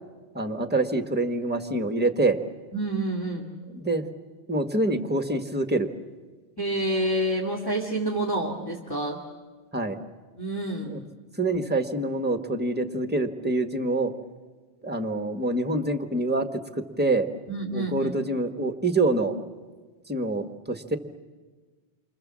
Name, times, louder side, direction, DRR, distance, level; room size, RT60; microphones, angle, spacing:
voice 1, 0.3-2.4 3.7-4.0 4.5-5.9 9.7-10.0 10.8-11.0 11.4-14.1 14.8-16.5 17.0-17.3 17.7-19.3 20.1-21.0, right 2 dB, 10° right, 7 dB, 1.3 m, -26 dB
voice 2, 2.7-3.5 6.6-9.2 10.4-10.9 17.5-18.1, right 1 dB, 20° left, -5 dB, 2.4 m, -28 dB
28.5 x 25.5 x 7.5 m, 1.4 s
omnidirectional pair, 1.1 m